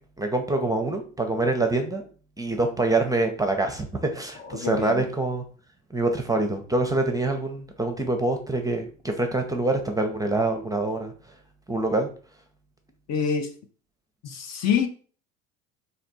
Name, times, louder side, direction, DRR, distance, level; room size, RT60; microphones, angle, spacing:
voice 1, 0.2-2.1 2.4-5.4 5.9-11.1 11.7-12.1, right 2 dB, 10° right, 0.7 m, -25 dB
voice 2, 4.4-5.1 13.1-13.5 14.2-14.9, left 7 dB, 40° left, 0.7 m, -26 dB
3.4 x 2.8 x 4.1 m
hypercardioid pair, 70°, 40 cm